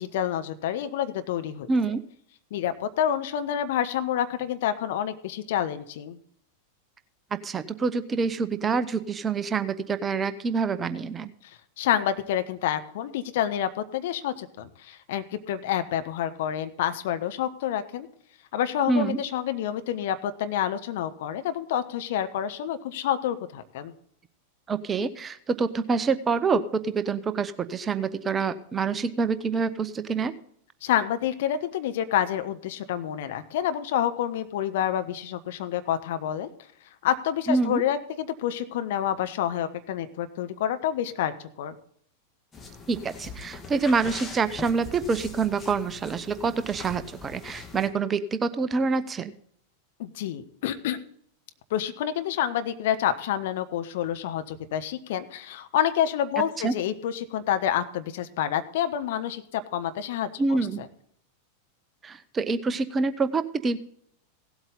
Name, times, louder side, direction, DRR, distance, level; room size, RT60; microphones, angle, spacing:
voice 1, 0.0-1.7 2.5-6.2 11.4-11.5 11.8-18.1 18.5-23.9 30.8-36.5 37.0-41.7 50.0-51.0 51.7-60.9, left 10 dB, 55° left, 10 dB, 1.0 m, -28 dB
voice 2, 1.7-2.0 7.4-11.3 18.9-19.2 24.7-30.3 37.5-37.8 42.9-49.3 56.6-56.7 60.4-60.8 62.0-63.8, right 4 dB, 20° right, 13 dB, 0.7 m, -26 dB
Kneading Bread, 42.5-47.9, left 3 dB, 15° left, 1.9 m, -42 dB
17.0 x 8.1 x 3.9 m, 0.66 s
figure-of-eight pair, 90°, 0 cm